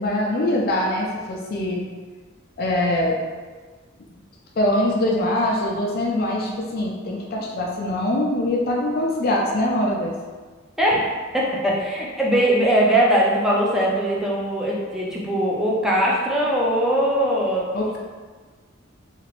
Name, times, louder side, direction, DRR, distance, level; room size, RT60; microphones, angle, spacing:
voice 1, 0.0-1.8 2.6-3.2 4.6-10.1 17.7-18.0, left 1 dB, 50° left, -2 dB, 0.4 m, -23 dB
voice 2, 10.8-17.7, right 1 dB, 5° right, -5 dB, 0.5 m, -21 dB
2.9 x 2.5 x 3.0 m, 1.4 s
head